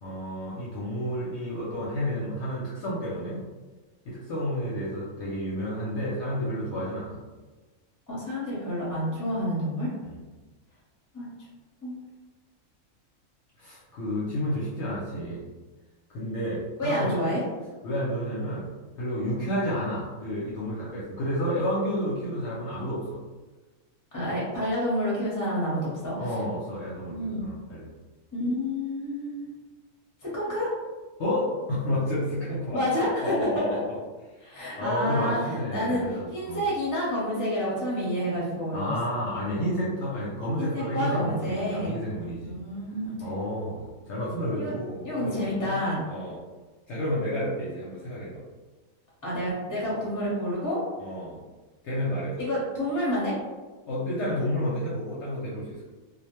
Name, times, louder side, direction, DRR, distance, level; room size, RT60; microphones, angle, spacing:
voice 1, 0.0-3.4 4.0-7.2 10.0-10.2 13.6-15.4 16.1-17.1 17.8-18.7 19.0-23.2 26.2-27.9 31.2-34.0 34.8-36.6 38.7-42.6 43.2-45.8 46.1-46.4 46.9-48.4 51.0-51.4 51.8-52.4 53.9-55.9, equal, 65° left, -6 dB, 0.8 m, -30 dB
voice 2, 8.1-9.9 11.1-11.3 11.8-11.9 16.8-17.4 24.1-26.3 27.1-27.4 28.3-29.5 30.2-30.7 32.7-33.3 33.7-33.8 34.4-36.0 36.3-38.9 39.5-39.9 40.6-41.9 42.4-43.2 44.5-44.7 45.0-46.0 49.2-50.8 52.4-53.4, equal, 15° left, -7 dB, 0.8 m, -29 dB
2.3 x 2.1 x 2.9 m, 1.3 s
omnidirectional pair, 1.4 m